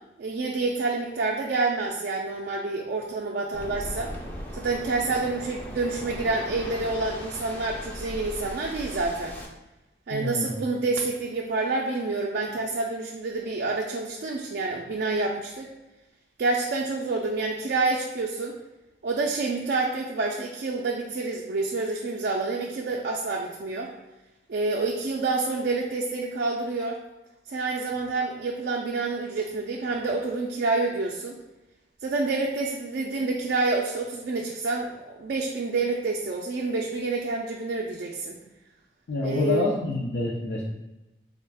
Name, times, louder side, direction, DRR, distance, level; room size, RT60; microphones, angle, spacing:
voice 1, 0.2-4.1 4.5-9.4 10.1-15.7 16.4-18.6 19.0-23.9 24.5-27.0 27.5-31.4 32.0-38.4 39.2-39.6, right 3 dB, 60° right, -1 dB, 0.4 m, -28 dB
Waves surf, 3.5-9.5, equal, 10° left, 0.4 m, -38 dB
voice 2, 10.1-10.5 39.1-40.6, left 2 dB, 75° left, -3 dB, 0.5 m, -27 dB
3.5 x 2.3 x 3.4 m, 1.0 s
head